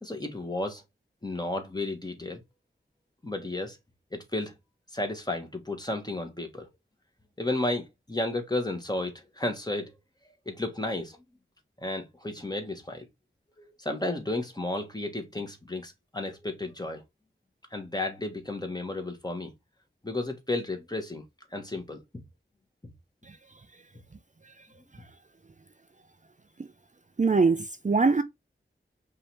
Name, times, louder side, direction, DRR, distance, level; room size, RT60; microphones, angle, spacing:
voice 1, 0.0-0.8 1.2-2.4 3.2-3.8 4.1-4.5 4.9-6.7 7.4-9.9 10.4-11.2 11.8-13.0 13.6-17.0 17.7-19.5 20.0-21.2 21.5-22.0, left 2 dB, 20° left, 1.6 m, -33 dB
voice 2, 27.2-28.2, right 4 dB, 40° right, 0.5 m, -22 dB
5.5 x 2.8 x 3.4 m
wide cardioid pair, 60°, 20 cm